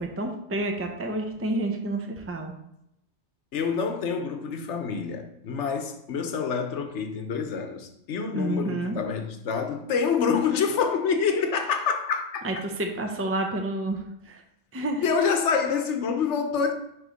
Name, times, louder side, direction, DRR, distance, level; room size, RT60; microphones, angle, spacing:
voice 1, 0.0-2.5 8.3-9.0 12.4-14.4 14.7-15.0, right 2 dB, 15° right, 0.6 m, -29 dB
voice 2, 3.5-12.4 15.0-16.7, left 6 dB, 90° left, 1.1 m, -27 dB
6.3 x 3.2 x 5.1 m
omnidirectional pair, 1.2 m